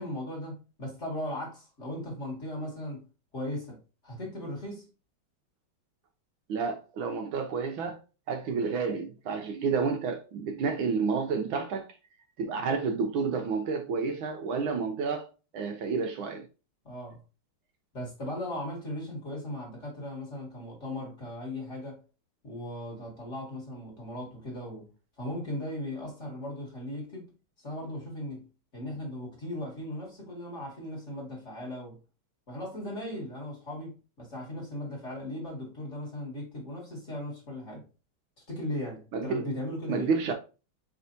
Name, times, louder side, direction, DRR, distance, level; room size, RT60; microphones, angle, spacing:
voice 1, 0.0-3.1 3.3-4.9 16.8-17.2 17.9-22.0 22.4-24.9 25.2-27.3 27.6-28.5 28.7-32.0 32.5-37.9 38.5-40.1, left 1 dB, 35° left, 2.1 m, -37 dB
voice 2, 6.5-8.0 8.3-11.9 12.4-15.3 15.5-16.5 39.1-39.5 39.9-40.3, right 5 dB, 70° right, 1.5 m, -30 dB
4.7 x 4.2 x 2.7 m
omnidirectional pair, 2.4 m